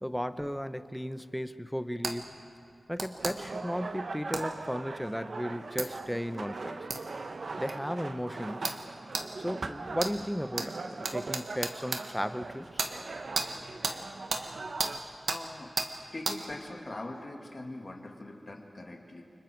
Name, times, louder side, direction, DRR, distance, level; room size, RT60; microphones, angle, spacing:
voice 1, 0.0-2.3 2.9-6.8 7.6-8.7 9.4-12.8, equal, ahead, 11 dB, 0.8 m, -35 dB
sound 1, 2.0-2.2 3.0-3.3 4.3-4.5 5.8-5.9 6.9-7.0 7.7-7.8 8.6-8.8 9.1-9.3 10.0-10.1 10.6-10.7 11.0-12.0 12.8-12.9 13.3-13.5 13.8-14.0 14.3-14.4 14.8-14.9 15.3-15.4 15.8-15.9 16.2-16.4, right 4 dB, 80° right, 1.6 m, -32 dB
sound 2, 3.2-15.0, right 3 dB, 65° right, 1.1 m, -40 dB
voice 2, 15.3-15.7 16.1-19.2, left 2 dB, 40° left, 1 dB, 2.4 m, -42 dB
30.0 x 25.0 x 4.6 m, 2.5 s
wide cardioid pair, 85°, 0 cm